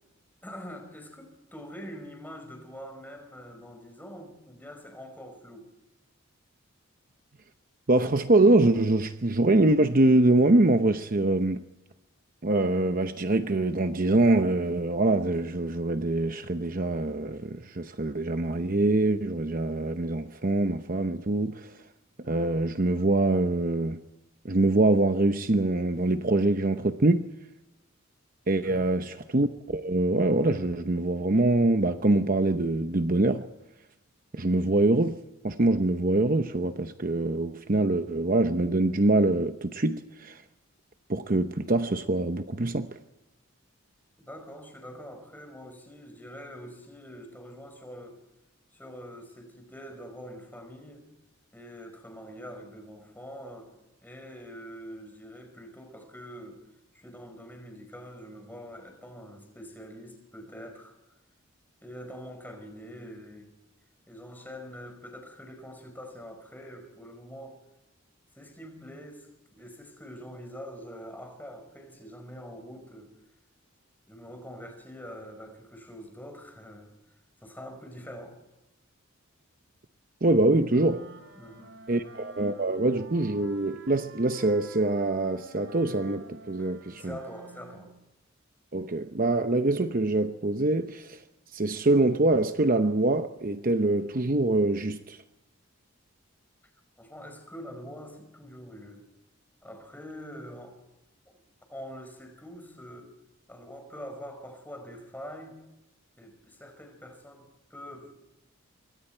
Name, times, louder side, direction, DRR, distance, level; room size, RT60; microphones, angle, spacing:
voice 1, 0.4-5.7 28.6-29.0 44.2-48.2 48.7-51.0 51.5-53.7 54.0-56.6 56.9-61.0 61.8-63.5 64.1-67.6 68.3-73.1 74.1-76.9 77.4-78.4 81.3-82.1 86.6-87.9 97.0-99.0 99.6-100.8 101.3-101.4 101.7-103.1 103.5-105.6 106.2-108.1, equal, 10° left, 4.9 m, -44 dB
voice 2, 7.9-11.6 12.4-21.7 22.2-24.0 24.4-27.3 28.5-33.5 34.3-40.4 41.1-43.0 80.2-81.0 81.9-87.2 88.7-91.2 91.5-95.2, right 2 dB, 40° right, 0.8 m, -24 dB
sound 1, 80.7-88.0, right 3 dB, 60° right, 3.7 m, -49 dB
26.0 x 23.0 x 4.6 m
head